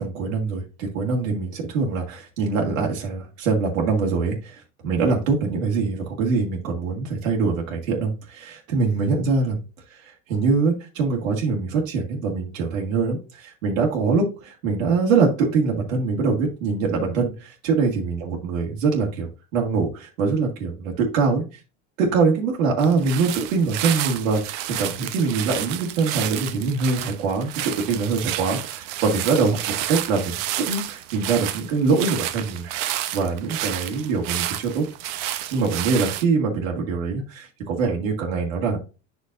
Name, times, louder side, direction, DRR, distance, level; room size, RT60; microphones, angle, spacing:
voice 1, 0.0-9.6 9.9-21.4 22.0-29.6 29.9-34.9 35.5-38.8, right 4 dB, 85° right, -1 dB, 2.0 m, -23 dB
sound 1, 22.8-36.2, right 13 dB, 55° right, 0.9 m, -30 dB
8.4 x 5.8 x 2.6 m, 0.31 s
supercardioid pair, 120°, 38 cm